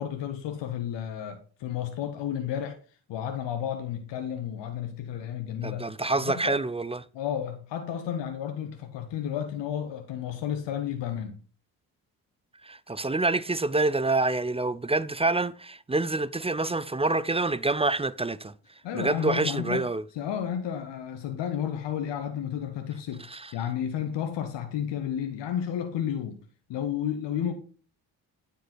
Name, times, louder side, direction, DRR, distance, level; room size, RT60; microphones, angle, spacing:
voice 1, 0.0-2.8 3.1-5.9 6.2-6.6 7.1-11.4 18.8-23.2 23.5-26.4 26.7-27.5, left 9 dB, 75° left, 1.2 m, -32 dB
voice 2, 5.6-7.0 12.6-18.5 18.9-20.0 23.3-23.5, right 2 dB, 15° right, 0.5 m, -27 dB
9.5 x 5.2 x 4.3 m
supercardioid pair, 55°, 42 cm